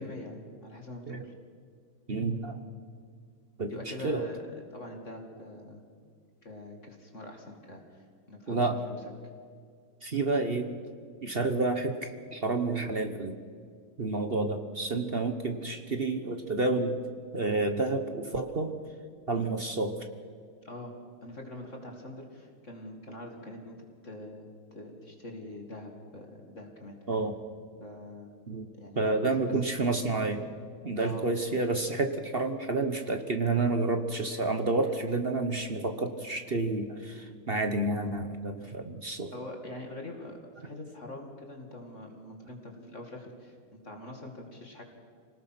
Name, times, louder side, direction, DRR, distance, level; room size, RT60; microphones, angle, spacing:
voice 1, 0.0-1.3 3.7-4.4 4.7-5.8 6.4-9.0 20.6-20.9 21.2-27.0 27.8-28.3 28.7-29.6 31.0-31.3 39.3-44.8, left 1 dB, 35° left, 2 dB, 2.5 m, -44 dB
voice 2, 2.1-2.6 3.6-3.7 4.0-4.2 8.5-8.8 10.0-10.7 11.2-13.4 14.0-17.0 17.3-18.8 19.3-20.1 27.1-27.4 28.5-28.7 29.0-30.4 30.8-39.3, right 3 dB, 40° right, 7 dB, 0.9 m, -29 dB
26.5 x 19.0 x 6.0 m, 2.1 s
omnidirectional pair, 2.3 m